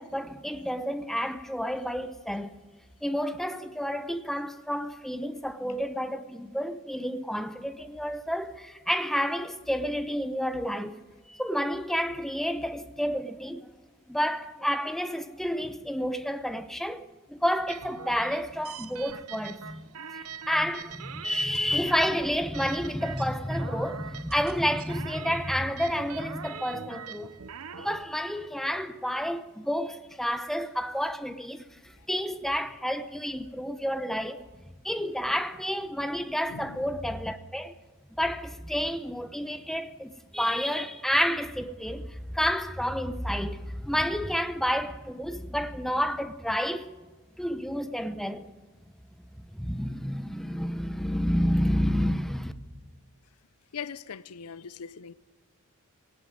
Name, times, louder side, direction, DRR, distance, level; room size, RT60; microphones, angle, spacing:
voice 1, 0.0-2.5 3.0-11.0 11.3-13.7 14.1-27.4 27.8-31.6 32.1-34.4 34.8-37.7 38.2-46.9 47.4-48.5 49.5-52.5, equal, ahead, 0.9 m, -30 dB
sound 1, 17.7-28.0, right 7 dB, 70° right, 0.7 m, -43 dB
voice 2, 28.5-28.9 34.3-34.4 36.5-37.0 53.7-55.1, left 6 dB, 80° left, 0.6 m, -42 dB
19.5 x 18.0 x 9.5 m
head